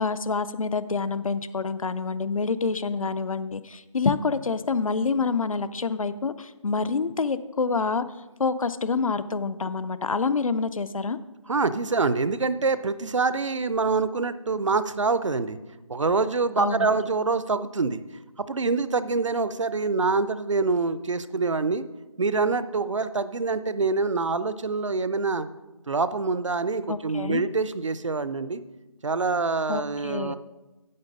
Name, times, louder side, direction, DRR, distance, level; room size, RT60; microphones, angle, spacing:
voice 1, 0.0-8.0 8.4-11.2 16.6-16.9 26.9-27.4 29.7-30.4, left 4 dB, 75° left, 15 dB, 0.6 m, -27 dB
voice 2, 11.5-15.6 15.9-18.0 18.4-21.8 22.2-25.5 25.9-28.6 29.0-30.4, right 4 dB, 60° right, 14 dB, 0.6 m, -25 dB
9.5 x 7.7 x 5.3 m, 1.1 s
figure-of-eight pair, 175°, 18 cm